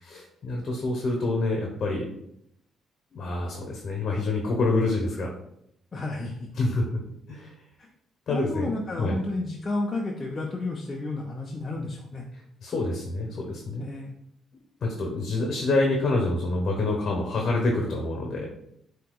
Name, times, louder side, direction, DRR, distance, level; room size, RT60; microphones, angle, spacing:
voice 1, 0.0-2.0 3.1-5.3 6.6-7.0 7.3-7.5 8.3-8.7 9.0-9.2 12.6-13.9 14.8-18.5, left 2 dB, 55° left, 0 dB, 1.0 m, -27 dB
voice 2, 5.9-6.5 7.8-7.9 8.3-12.2 13.8-14.1, left 2 dB, 30° left, -1 dB, 0.6 m, -31 dB
7.4 x 2.8 x 2.3 m, 0.76 s
cardioid pair, 90°, 0 cm